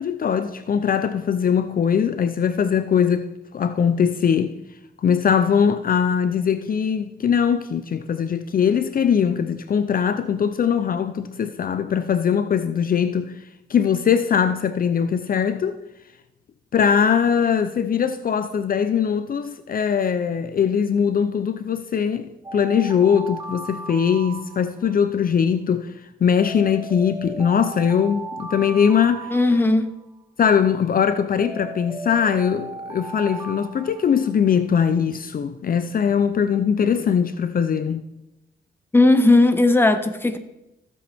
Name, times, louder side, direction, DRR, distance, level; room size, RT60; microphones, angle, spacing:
voice 1, 0.0-3.3 3.5-4.5 5.0-13.3 13.7-15.7 16.7-25.9 26.2-29.4 30.4-38.0, left 7 dB, 50° left, 0.6 m, -21 dB
Alarm, 22.4-25.1 26.4-30.1 31.4-34.6, right 3 dB, 20° right, 1.0 m, -36 dB
voice 2, 29.3-29.9 38.9-40.4, left 2 dB, 10° left, 0.9 m, -16 dB
15.5 x 7.7 x 3.5 m
cardioid pair, 100°, 19 cm